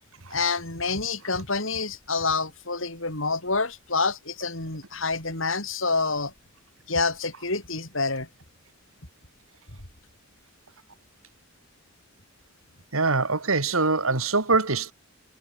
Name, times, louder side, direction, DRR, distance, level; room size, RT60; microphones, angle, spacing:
voice 1, 0.3-6.3 6.9-8.3, left 4 dB, 70° left, 6.2 m, -27 dB
voice 2, 12.9-14.9, right 3 dB, 85° right, 2.9 m, -23 dB
head